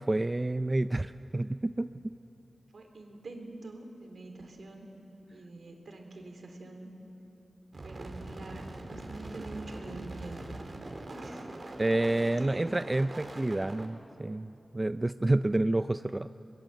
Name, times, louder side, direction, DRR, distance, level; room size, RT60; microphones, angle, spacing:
voice 1, 0.0-2.1 11.8-16.3, right 2 dB, 30° right, 12 dB, 0.4 m, -29 dB
voice 2, 2.7-4.9 5.3-6.9 7.8-10.4 11.1-11.5 12.4-12.6, right 2 dB, 75° right, 4 dB, 3.1 m, -45 dB
sound 1, 7.7-13.9, right 2 dB, 55° right, 2.9 m, -43 dB
23.0 x 21.0 x 7.9 m, 3.0 s
cardioid pair, 45°, 0 cm